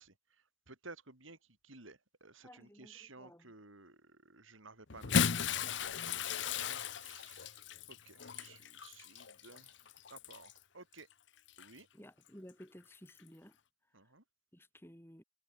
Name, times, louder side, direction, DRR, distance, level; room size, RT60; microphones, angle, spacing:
voice 1, 0.0-5.7 6.0-11.1 11.6-11.9 13.9-14.2, right 3 dB, 85° right, 6.1 m, -56 dB
voice 2, 2.4-3.5 11.9-13.6 14.5-15.2, equal, 10° left, 7.6 m, -55 dB
Bathtub (filling or washing) / Splash splatter, 4.9-10.6 11.5-11.7 13.1-13.2, left 7 dB, 65° left, 0.8 m, -36 dB
head